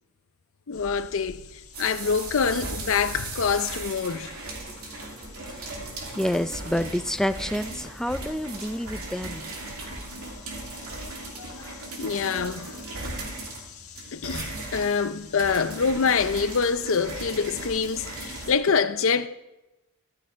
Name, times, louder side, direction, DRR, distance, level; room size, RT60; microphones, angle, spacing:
sound 1, 0.7-18.6, left 5 dB, 85° left, 1.6 m, -48 dB
voice 1, 0.7-1.4 1.8-4.3 10.9-11.1 11.4-11.7 12.0-12.7 13.2-13.3 14.1-19.3, left 5 dB, 65° left, 0.6 m, -25 dB
sound 2, 1.7-18.6, right 2 dB, 80° right, 2.8 m, -37 dB
voice 2, 6.1-9.5, equal, ahead, 0.4 m, -28 dB
14.0 x 13.5 x 3.6 m
head